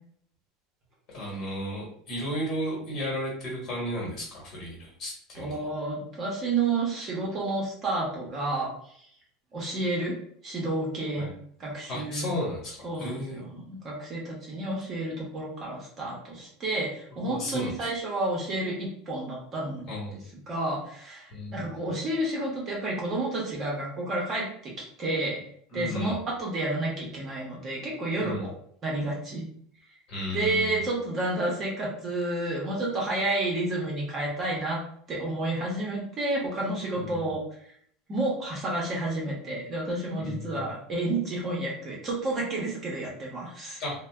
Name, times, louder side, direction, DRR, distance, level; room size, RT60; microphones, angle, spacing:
voice 1, 1.1-5.7 11.2-11.3 11.9-13.5 17.2-17.9 19.9-20.2 21.3-21.6 25.7-26.2 28.2-28.5 30.1-30.8 37.0-37.1 40.2-40.7 43.8-43.9, left 1 dB, 40° left, -3 dB, 1.2 m, -34 dB
voice 2, 5.3-8.7 9.5-10.2 10.4-11.3 11.6-12.3 12.8-19.9 20.5-25.4 25.7-28.4 28.8-29.5 30.3-34.8 35.1-37.4 37.6-37.7 38.1-43.8, right 2 dB, 25° right, -3 dB, 0.9 m, -30 dB
2.6 x 2.1 x 3.3 m, 0.63 s
supercardioid pair, 160°, 0 cm